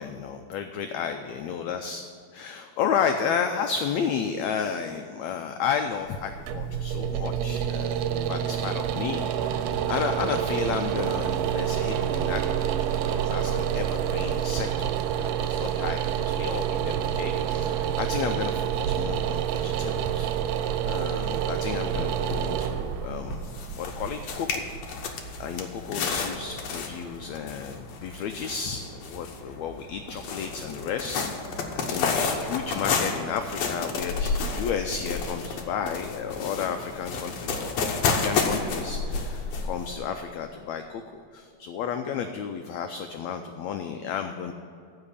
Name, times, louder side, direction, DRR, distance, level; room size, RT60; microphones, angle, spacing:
voice 1, 0.0-2.0 2.3-12.8 13.1-23.5 23.8-24.7 25.1-44.5, left 7 dB, 85° left, 6 dB, 1.6 m, -32 dB
sound 1, 6.1-25.0, right 9 dB, 85° right, 2.2 m, -28 dB
sound 2, 21.6-21.7 21.9-40.0, left 4 dB, 65° left, 2.0 m, -31 dB
15.0 x 5.0 x 8.4 m, 2.4 s
omnidirectional pair, 3.8 m